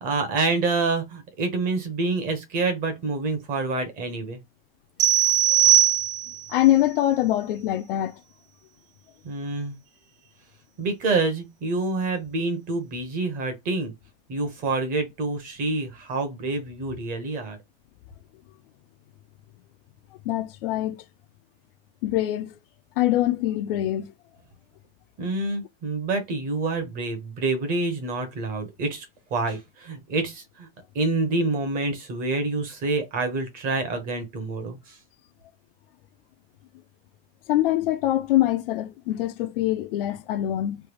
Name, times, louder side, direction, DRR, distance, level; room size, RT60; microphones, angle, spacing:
voice 1, 0.0-4.4 9.2-9.7 10.8-13.9 14.3-17.6 25.2-29.0 29.3-30.7 30.9-35.0, right 3 dB, 25° right, 0.8 m, -27 dB
sound 1, 5.0-6.5, right 12 dB, 75° right, 1.2 m, -19 dB
voice 2, 5.5-5.9 6.5-8.1 20.3-21.0 22.0-22.6 23.0-24.1 37.5-40.8, left 14 dB, 55° left, 0.5 m, -24 dB
3.2 x 2.3 x 3.1 m
supercardioid pair, 165°, 34 cm